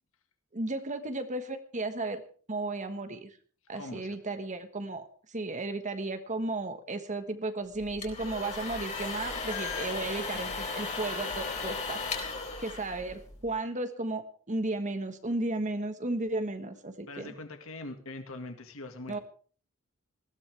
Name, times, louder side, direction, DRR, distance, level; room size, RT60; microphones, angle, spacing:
voice 1, 0.5-2.2 2.5-3.4 3.7-12.0 12.6-17.3 19.1-19.2, right 2 dB, 35° right, 8 dB, 1.4 m, -34 dB
voice 2, 3.7-4.2 8.6-8.7 10.3-10.4 17.1-19.2, left 2 dB, 70° left, 6 dB, 2.0 m, -42 dB
sound 1, 7.8-13.5, left 4 dB, 35° left, 4.3 m, -36 dB
20.0 x 16.0 x 3.4 m, 0.43 s
head